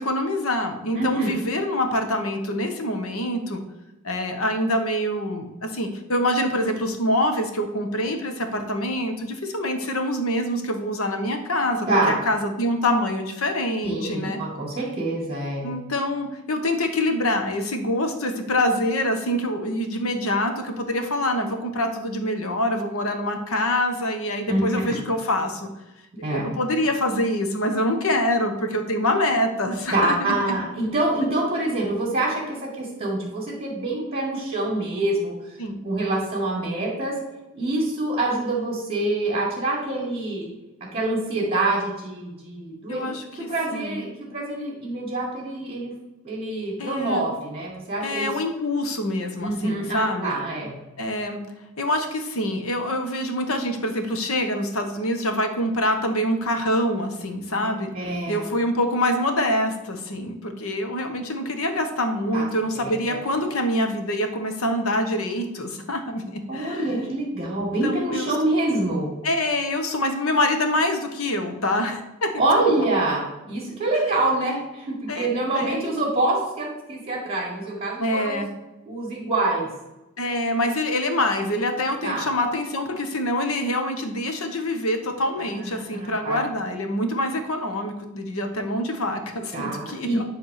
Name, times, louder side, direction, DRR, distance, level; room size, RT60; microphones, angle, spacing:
voice 1, 0.0-3.6 4.0-14.4 15.6-25.7 26.2-30.2 30.5-30.6 35.6-35.8 42.9-44.0 46.8-47.3 48.0-50.4 51.0-51.4 51.8-57.9 58.3-66.9 67.8-68.3 69.2-72.3 75.1-75.3 75.5-75.8 78.0-78.5 80.2-90.2, left 1 dB, 85° left, 6 dB, 1.2 m, -25 dB
voice 2, 0.9-1.4 11.9-12.2 13.8-15.7 24.5-24.6 26.2-26.4 29.9-35.3 35.8-37.1 37.5-40.5 40.9-45.9 46.2-48.3 49.4-50.7 57.9-58.4 62.3-62.5 62.8-62.9 66.5-69.1 72.4-78.4 78.9-79.7 82.0-82.3 85.7-86.4 89.5-90.2, right 2 dB, 30° right, -6 dB, 2.1 m, -26 dB
9.9 x 3.6 x 6.6 m, 0.99 s
head